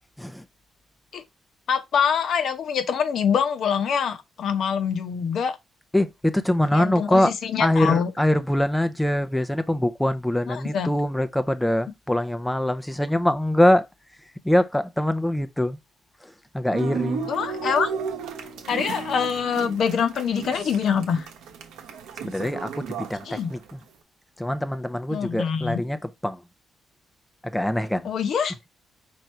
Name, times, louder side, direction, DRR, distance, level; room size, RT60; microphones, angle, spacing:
voice 1, 1.7-5.6 6.7-8.1 10.5-10.9 17.3-17.9 18.7-21.3 23.3-23.5 25.1-25.8 28.0-28.5, left 7 dB, 65° left, 0.8 m, -24 dB
voice 2, 5.9-7.3 7.6-13.9 14.2-15.8 16.2-17.3 22.2-23.8 24.4-26.4 27.4-28.1, left 1 dB, 5° left, 0.5 m, -23 dB
sound 1, 16.7-23.7, right 6 dB, 90° right, 0.9 m, -34 dB
4.6 x 2.6 x 4.4 m
cardioid pair, 80°, 0 cm